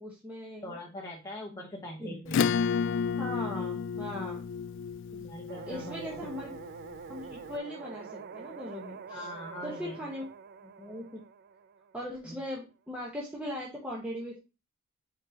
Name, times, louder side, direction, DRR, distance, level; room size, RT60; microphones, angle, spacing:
voice 1, 0.0-0.7 1.5-1.6 2.0-2.2 3.2-4.4 5.1-5.2 5.7-6.5 7.1-9.3 9.6-10.2 10.8-11.2 11.9-14.4, left 1 dB, 5° right, -4 dB, 1.1 m, -39 dB
voice 2, 0.6-2.8 5.2-6.3 9.1-10.0 12.3-12.4, equal, 15° left, -2 dB, 0.9 m, -42 dB
Acoustic guitar / Strum, 2.3-7.2, left 6 dB, 60° left, 0.3 m, -32 dB
sound 1, 5.5-12.4, right 6 dB, 45° right, 0.3 m, -46 dB
8.9 x 3.9 x 2.8 m, 0.28 s
head